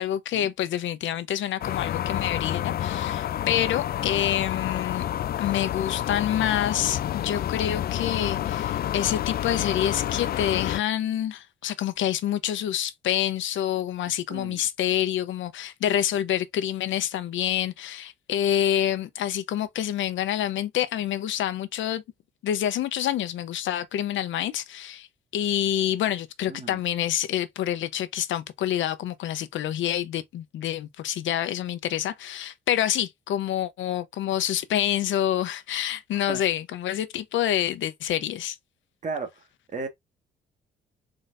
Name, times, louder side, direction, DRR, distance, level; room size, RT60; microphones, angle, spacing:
voice 1, 0.0-5.1 5.4-22.0 22.4-25.1 25.3-38.6, left 11 dB, 75° left, 0.8 m, -27 dB
sound 1, 1.6-10.8, left 11 dB, 50° left, 0.4 m, -29 dB
voice 2, 14.3-14.6 26.5-26.8 36.3-36.4 39.0-39.3 39.7-39.9, right 4 dB, 40° right, 1.5 m, -34 dB
4.0 x 3.9 x 2.5 m
cardioid pair, 90°, 20 cm